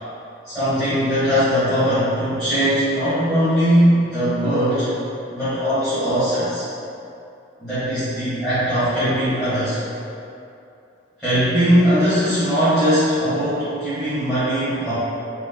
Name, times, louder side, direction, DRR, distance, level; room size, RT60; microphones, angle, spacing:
voice 1, 0.4-4.9 5.3-6.6 7.6-9.8 11.2-14.9, equal, ahead, -18 dB, 1.3 m, -20 dB
3.1 x 3.0 x 3.6 m, 2.6 s
head